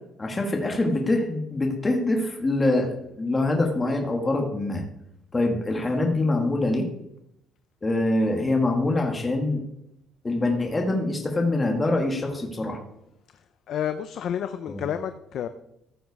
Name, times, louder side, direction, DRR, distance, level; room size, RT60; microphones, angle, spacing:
voice 1, 0.2-4.8 5.3-6.9 7.8-9.6 10.2-12.8 14.7-14.8, left 2 dB, 15° left, 2 dB, 1.5 m, -24 dB
voice 2, 13.7-15.5, left 9 dB, 55° left, 9 dB, 0.6 m, -30 dB
14.5 x 7.8 x 4.7 m, 0.81 s
cardioid pair, 170°, 0 cm